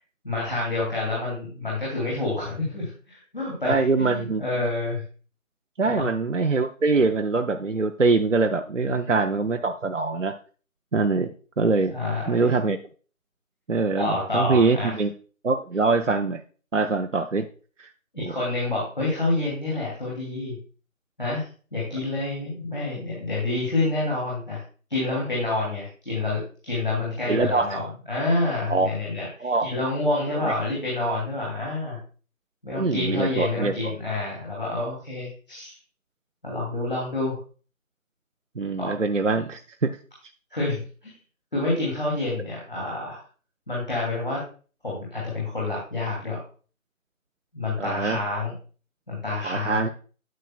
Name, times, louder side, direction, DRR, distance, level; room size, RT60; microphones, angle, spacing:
voice 1, 0.2-5.0 6.0-6.1 8.8-9.2 11.9-12.4 14.0-15.0 18.1-20.6 21.2-24.6 24.9-32.0 32.6-35.7 36.4-37.4 38.8-38.9 40.5-41.1 41.5-43.2 43.7-44.4 44.8-46.4 47.5-48.5 49.1-49.8, left 2 dB, 40° left, -5 dB, 2.7 m, -28 dB
voice 2, 3.6-4.4 5.8-10.3 10.9-12.0 12.3-12.8 13.7-15.1 15.4-16.4 16.7-17.5 17.8-17.9 18.2-18.4 27.3-27.7 28.7-28.9 29.4-29.7 30.3-30.4 32.7-33.9 38.6-39.9 47.8-48.2 49.4-49.9, right 4 dB, 60° right, 6 dB, 0.6 m, -23 dB
9.2 x 7.6 x 2.3 m, 0.38 s
figure-of-eight pair, 175°, 42 cm